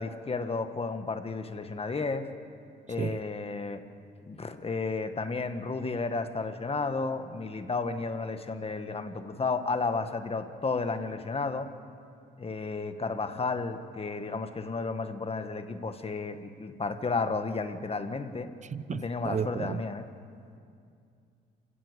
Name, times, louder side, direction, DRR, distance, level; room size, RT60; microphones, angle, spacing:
voice 1, 0.0-2.3 2.9-3.8 4.3-11.7 12.4-18.5 18.9-20.1, left 4 dB, 30° left, 1.6 m, -32 dB
voice 2, 18.7-19.8, right 7 dB, 35° right, 0.8 m, -33 dB
28.0 x 16.5 x 8.1 m
cardioid pair, 90°, 20 cm